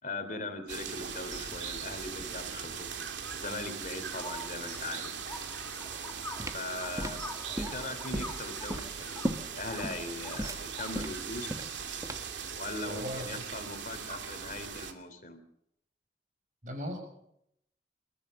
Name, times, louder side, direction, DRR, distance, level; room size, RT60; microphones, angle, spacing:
voice 1, 0.0-3.0 3.3-5.1 6.5-7.2 7.6-9.2 9.6-11.6 12.6-15.4, left 2 dB, 45° left, 9 dB, 3.2 m, -40 dB
sound 1, 0.7-14.9, right 7 dB, 85° right, 2.5 m, -40 dB
sound 2, 2.2-11.9, left 2 dB, 15° left, 1.6 m, -47 dB
sound 3, 6.1-12.4, right 1 dB, 20° right, 1.5 m, -37 dB
voice 2, 12.8-13.4 16.6-17.0, equal, 45° right, 5 dB, 6.7 m, -38 dB
29.0 x 14.5 x 6.6 m, 0.77 s
head